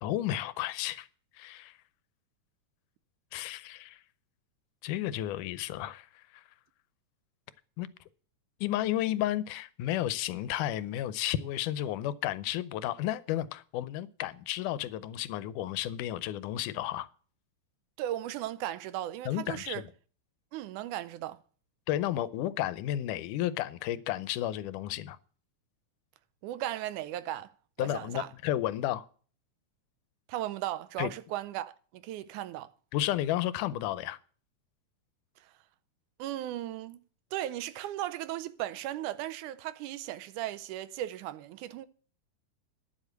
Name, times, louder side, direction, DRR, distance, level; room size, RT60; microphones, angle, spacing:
voice 1, 0.0-1.1 1.4-1.8 3.3-4.0 4.8-6.1 6.3-6.4 7.8-7.9 8.6-17.1 19.3-19.8 21.9-25.2 27.8-29.1 31.0-31.1 32.9-34.2, left 13 dB, 90° left, 2.2 m, -32 dB
voice 2, 18.0-19.8 20.5-21.4 26.4-27.5 27.8-28.3 30.3-32.7 35.4-35.5 36.2-37.0 37.3-41.9, right 13 dB, 80° right, 2.1 m, -36 dB
10.5 x 7.4 x 7.9 m
omnidirectional pair, 3.5 m